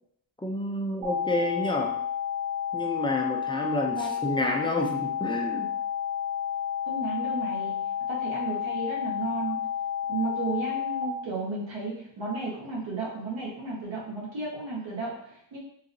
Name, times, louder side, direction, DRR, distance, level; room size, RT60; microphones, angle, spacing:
voice 1, 0.4-2.0 2.7-5.7, left 1 dB, 10° left, 0 dB, 0.4 m, -29 dB
sound 1, 1.0-11.0, left 9 dB, 50° right, 1.3 m, -31 dB
voice 2, 6.9-7.7 8.1-9.6 10.1-15.6, right 3 dB, 80° right, -4 dB, 1.3 m, -33 dB
3.9 x 2.6 x 2.6 m, 0.73 s
cardioid pair, 100°, 45 cm